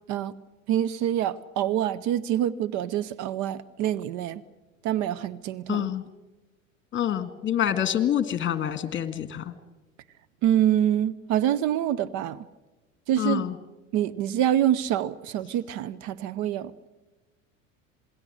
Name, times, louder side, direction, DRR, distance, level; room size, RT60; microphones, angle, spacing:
voice 1, 0.7-4.4 4.8-5.9 10.4-12.5 13.1-13.5 13.9-16.9, right 11 dB, 45° right, 15 dB, 0.8 m, -26 dB
voice 2, 5.7-6.0 6.9-9.5 13.2-13.5, left 10 dB, 30° left, 12 dB, 1.9 m, -26 dB
27.5 x 19.5 x 6.4 m, 1.1 s
figure-of-eight pair, 80°, 40 cm